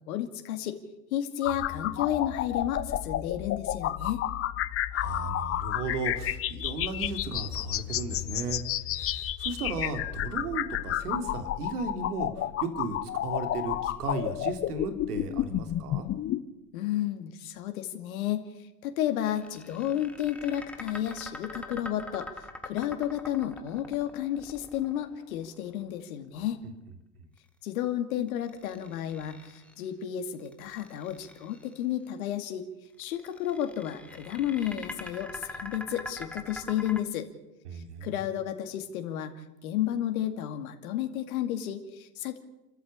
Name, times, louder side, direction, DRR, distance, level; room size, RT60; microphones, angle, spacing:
voice 1, 0.1-0.8 1.1-4.2 16.7-18.4 18.8-22.3 22.6-26.6 27.6-32.6 33.0-37.3 37.7-39.3 39.6-42.4, left 11 dB, 60° left, 6 dB, 2.5 m, -32 dB
sound 1, 1.4-16.4, left 12 dB, 30° left, 1.1 m, -31 dB
voice 2, 4.9-8.6 8.9-16.1 37.6-38.1, right 4 dB, 70° right, 7 dB, 3.3 m, -35 dB
sound 2, 19.2-25.5 28.3-29.8 30.4-31.7 33.0-37.0, left 1 dB, ahead, 2.1 m, -43 dB
29.0 x 13.5 x 8.5 m, 0.98 s
figure-of-eight pair, 90°, 48 cm